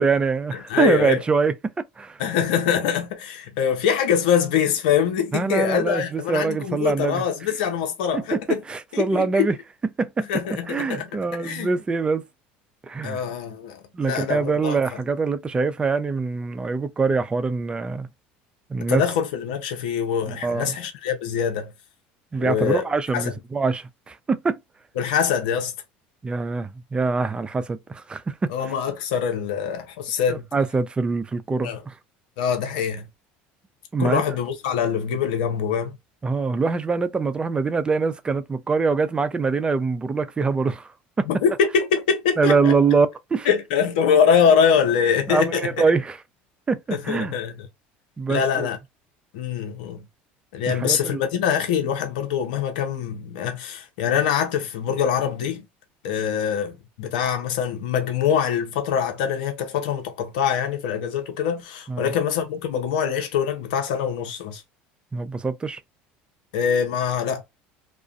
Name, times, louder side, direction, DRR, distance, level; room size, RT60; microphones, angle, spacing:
voice 1, 0.0-1.5 2.0-2.2 5.3-7.2 8.1-9.6 10.0-10.3 10.7-12.2 12.8-13.2 13.9-18.1 18.7-19.0 20.3-20.8 22.3-24.6 26.2-28.5 30.3-31.9 33.9-34.2 36.2-40.9 41.2-41.3 42.4-43.5 45.3-46.2 46.7-47.4 48.2-48.7 50.7-51.2 61.9-62.1 65.1-65.8, right 4 dB, 20° right, 0.4 m, -24 dB
voice 2, 0.5-1.2 2.2-8.6 8.9-9.5 10.3-11.7 13.0-14.8 18.9-21.7 22.4-22.9 23.1-23.2 25.0-25.7 28.5-30.4 31.6-31.8 32.4-33.1 34.0-36.0 41.3-42.7 43.4-45.8 46.9-47.7 48.3-48.8 49.3-50.0 50.5-55.6 56.0-64.6 66.5-67.4, left 7 dB, 80° left, 0.7 m, -24 dB
2.4 x 2.1 x 2.4 m
supercardioid pair, 90°, 5 cm